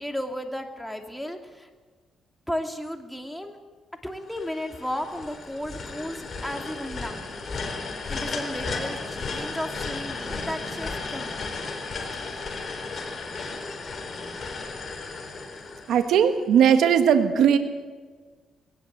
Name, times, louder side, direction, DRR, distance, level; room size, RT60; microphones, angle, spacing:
voice 1, 0.0-1.7 2.5-3.6 4.0-7.3 8.1-11.5, equal, ahead, 4 dB, 2.5 m, -34 dB
sound 1, 4.3-16.4, left 3 dB, 45° left, 4.2 m, -34 dB
voice 2, 15.9-17.6, right 8 dB, 75° right, 8 dB, 1.6 m, -18 dB
20.0 x 18.5 x 8.1 m, 1.4 s
cardioid pair, 90°, 0 cm